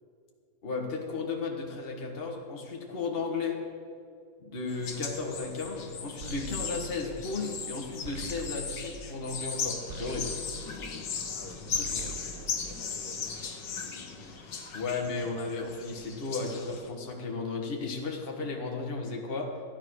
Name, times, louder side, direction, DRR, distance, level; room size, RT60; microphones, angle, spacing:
voice 1, 0.6-3.6 4.4-10.3 11.9-12.1 14.7-19.5, left 4 dB, 35° left, 1 dB, 1.7 m, -34 dB
sound 1, 4.7-16.9, left 6 dB, 75° left, 2.0 m, -38 dB
sound 2, 6.2-11.4 11.7-13.4, right 5 dB, 60° right, 0.4 m, -44 dB
voice 2, 11.3-14.4, left 2 dB, 55° left, 2 dB, 2.1 m, -51 dB
14.0 x 9.8 x 6.4 m, 2.3 s
omnidirectional pair, 1.9 m